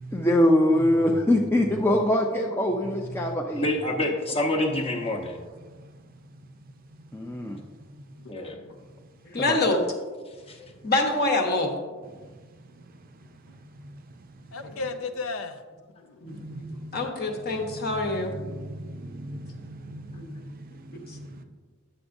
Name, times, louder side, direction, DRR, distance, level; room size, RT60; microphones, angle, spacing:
voice 1, 0.1-3.7 7.1-7.6 9.4-9.6, left 1 dB, 10° left, 0.4 m, -23 dB
voice 2, 3.6-5.4 8.3-8.6 10.3-10.7, left 1 dB, 30° left, 0.9 m, -27 dB
voice 3, 8.4-8.8 14.5-15.6 16.0-16.4, left 3 dB, 75° left, 0.5 m, -35 dB
voice 4, 9.3-9.8 10.8-11.7 16.2-16.4 16.9-18.3 20.1-20.3, left 2 dB, 50° left, 1.0 m, -25 dB
voice 5, 16.3-17.1 17.6-21.4, right 1 dB, 45° right, 0.5 m, -39 dB
9.7 x 7.0 x 2.6 m
head